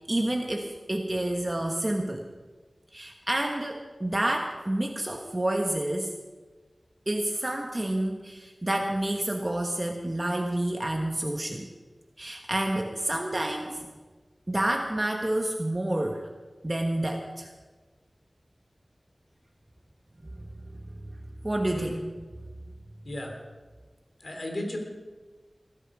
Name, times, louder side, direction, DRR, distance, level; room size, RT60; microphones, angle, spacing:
voice 1, 0.0-2.3 2.9-6.1 7.1-11.7 12.2-13.9 14.5-16.3 16.6-17.5 20.2-21.2 21.4-21.9, right 1 dB, 30° right, 3 dB, 1.3 m, -29 dB
voice 2, 23.0-23.3 24.2-24.8, left 1 dB, 70° left, 2 dB, 3.3 m, -35 dB
20.0 x 12.0 x 5.0 m, 1.3 s
wide cardioid pair, 55°, 0 cm